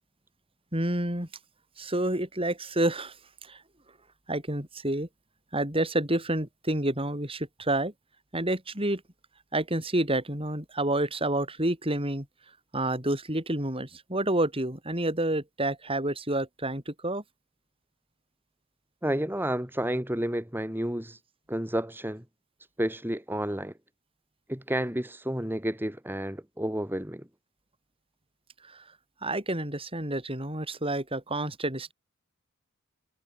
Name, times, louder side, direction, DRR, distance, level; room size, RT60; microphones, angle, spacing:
voice 1, 0.7-1.3 1.8-3.2 3.4-3.6 4.3-5.1 5.5-7.9 8.3-9.0 9.5-12.3 12.7-17.2 28.6-28.8 29.2-31.9, right 1 dB, 25° right, 7.3 m, -29 dB
voice 2, 19.0-21.2 21.5-22.2 22.8-23.7 24.5-27.3, right 1 dB, 10° right, 2.9 m, -30 dB
head